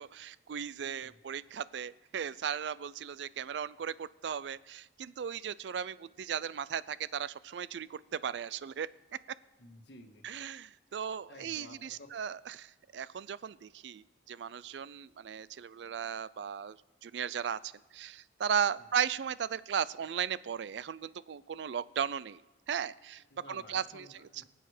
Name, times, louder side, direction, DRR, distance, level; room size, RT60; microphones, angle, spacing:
voice 1, 0.0-8.9 10.2-16.8 17.0-22.4 22.7-24.1, right 8 dB, 80° right, 19 dB, 0.4 m, -36 dB
voice 2, 9.6-10.3 11.3-12.1 18.8-18.9 23.3-24.4, left 2 dB, 75° left, 4 dB, 1.5 m, -53 dB
23.0 x 7.8 x 4.9 m, 1.1 s
head